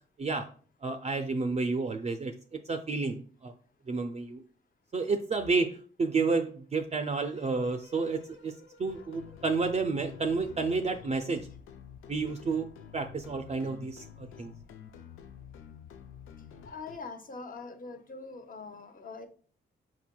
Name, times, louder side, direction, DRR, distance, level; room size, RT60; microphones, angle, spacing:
voice 1, 0.8-3.5 3.9-4.4 4.9-8.5 8.8-11.5 12.1-12.7 12.9-14.5, right 4 dB, 35° right, 6 dB, 0.4 m, -30 dB
sound 1, 7.2-11.5, left 3 dB, 70° left, 1.4 m, -58 dB
sound 2, 8.9-17.0, left 8 dB, 90° left, 0.4 m, -49 dB
voice 2, 16.7-19.3, left 4 dB, 45° left, 7 dB, 0.8 m, -43 dB
4.4 x 4.3 x 2.2 m, 0.43 s
cardioid pair, 65°, 20 cm